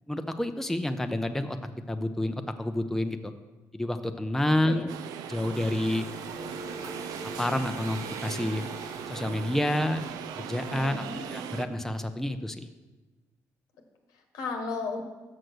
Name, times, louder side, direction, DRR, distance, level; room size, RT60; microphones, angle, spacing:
voice 1, 0.1-1.6 1.9-3.3 3.7-4.9 5.3-6.1 7.4-8.7 9.1-10.0 10.3-11.0 11.3-12.7, left 1 dB, 5° left, 7 dB, 0.5 m, -29 dB
voice 2, 4.4-4.9 10.7-11.2 14.1-15.0, left 4 dB, 85° left, 4 dB, 1.2 m, -35 dB
sound 1, 4.9-11.7, right 8 dB, 90° right, 0.4 m, -39 dB
sound 2, 5.5-11.4, right 3 dB, 60° right, 0.9 m, -42 dB
6.6 x 6.4 x 6.2 m, 1.2 s
cardioid pair, 80°, 6 cm